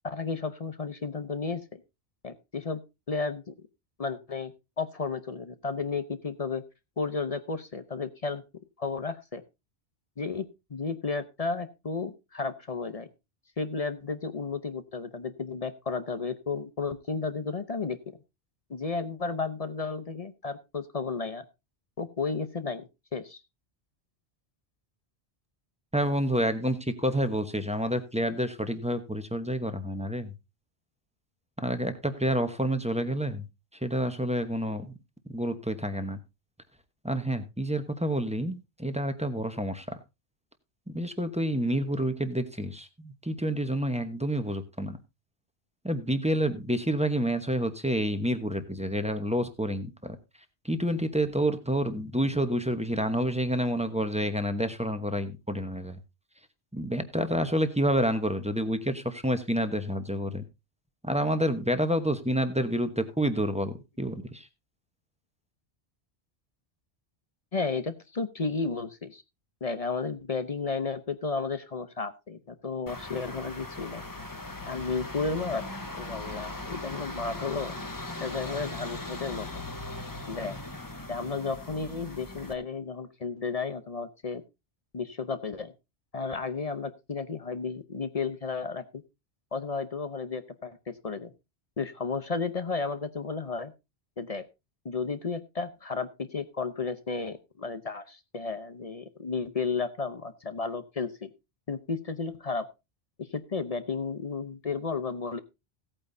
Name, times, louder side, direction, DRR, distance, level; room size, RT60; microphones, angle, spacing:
voice 1, 0.0-1.8 2.2-2.8 3.1-3.5 4.0-6.6 7.0-8.4 8.8-9.4 10.2-13.1 13.6-18.2 18.7-21.4 22.0-23.4 67.5-69.2 69.6-74.0 74.7-77.7 78.2-79.5 80.3-80.6 81.1-84.4 84.9-85.7 86.1-89.0 89.5-91.3 91.8-93.7 94.2-94.4 94.8-101.3 101.7-102.7 103.3-105.4, left 4 dB, 40° left, 11 dB, 0.8 m, -33 dB
voice 2, 25.9-30.3 31.6-33.4 33.8-34.9 35.3-36.2 37.0-39.8 40.9-45.0 45.8-50.2 50.6-56.0 56.7-60.4 61.0-64.5, equal, 5° right, 9 dB, 1.0 m, -28 dB
sound 1, 72.9-82.5, left 2 dB, 20° left, 1.0 m, -39 dB
16.5 x 8.8 x 2.7 m, 0.25 s
omnidirectional pair, 1.1 m